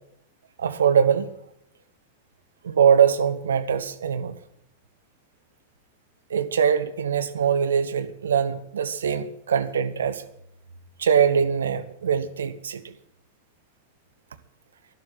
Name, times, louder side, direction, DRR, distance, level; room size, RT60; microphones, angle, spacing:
voice 1, 0.6-1.3 2.6-4.4 6.3-10.2 11.0-12.8, right 7 dB, 65° right, 1.0 m, -22 dB
12.0 x 11.5 x 7.7 m
figure-of-eight pair, 90°, 0 cm